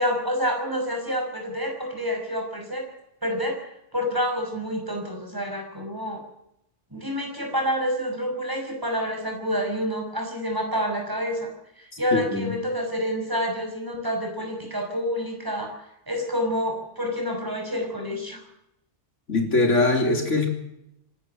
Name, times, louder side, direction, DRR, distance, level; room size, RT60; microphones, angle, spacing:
voice 1, 0.0-2.8 3.2-3.6 3.9-6.2 6.9-11.5 11.8-18.4, equal, 15° right, 2 dB, 5.7 m, -28 dB
voice 2, 12.1-12.5 19.3-20.5, left 2 dB, 80° left, 3 dB, 4.0 m, -22 dB
26.0 x 12.5 x 7.9 m, 0.81 s
omnidirectional pair, 1.2 m